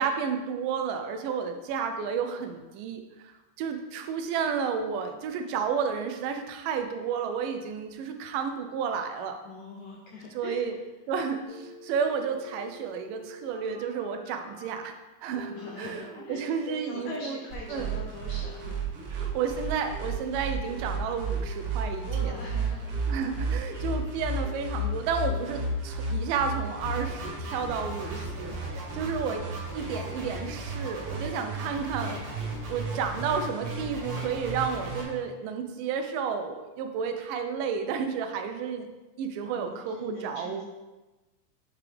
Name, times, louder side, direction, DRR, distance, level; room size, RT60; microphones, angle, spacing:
voice 1, 0.0-3.3 3.6-9.4 10.4-10.8 11.1-14.9 15.2-16.0 16.3-17.4 17.7-17.9 19.1-22.4 23.1-29.5 29.7-32.2 32.7-38.9 39.2-40.6, right 6 dB, 80° right, 6 dB, 2.1 m, -31 dB
voice 2, 9.4-10.7 15.5-18.7 19.1-19.2 22.1-23.0 23.3-23.5 39.5-40.6, left 3 dB, 80° left, -1 dB, 1.7 m, -42 dB
Telephone, 11.4-14.7 15.3-15.7 16.0-17.3 17.7-18.0 18.4-21.8 22.2-22.5 22.8-24.9 25.3-26.1 26.5-26.9 27.2-27.6 28.0-28.4 28.7-28.8, left 1 dB, 25° right, 0.7 m, -47 dB
sound 1, 17.5-35.0, right 3 dB, 65° right, 2.3 m, -34 dB
sound 2, 26.8-35.0, equal, 45° right, 1.2 m, -40 dB
8.2 x 3.6 x 3.3 m, 1.1 s
omnidirectional pair, 3.9 m